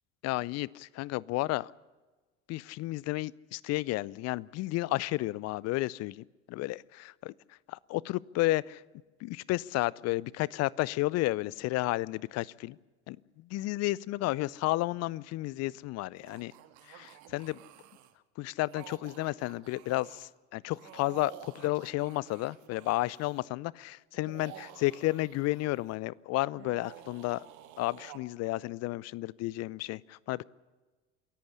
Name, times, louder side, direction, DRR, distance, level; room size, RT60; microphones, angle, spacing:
voice 1, 0.2-1.7 2.5-7.3 7.7-8.8 9.2-12.8 13.1-16.5 16.9-17.6 18.4-27.5 27.8-30.4, left 19 dB, 45° left, 24 dB, 0.6 m, -32 dB
sound 1, 16.2-18.1 18.6-20.3 20.7-23.4 24.1-26.0 26.5-28.2, right 12 dB, 55° right, 1.8 m, -51 dB
27.5 x 11.5 x 9.9 m, 1.3 s
figure-of-eight pair, 65°, 35 cm